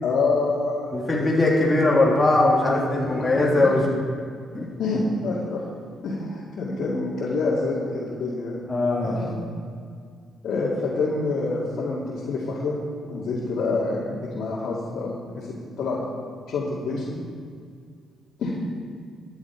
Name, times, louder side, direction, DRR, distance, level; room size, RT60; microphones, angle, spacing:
voice 1, 0.0-1.6 2.7-3.7 4.8-5.6 6.0-8.6 9.0-9.4 10.4-16.1 16.5-17.2 18.4-18.6, left 3 dB, 70° left, -7 dB, 2.4 m, -27 dB
voice 2, 0.9-3.9 4.5-4.7 8.7-9.3, left 2 dB, 15° left, -5 dB, 3.0 m, -20 dB
13.0 x 9.6 x 4.6 m, 2.2 s
cardioid pair, 90°, 0 cm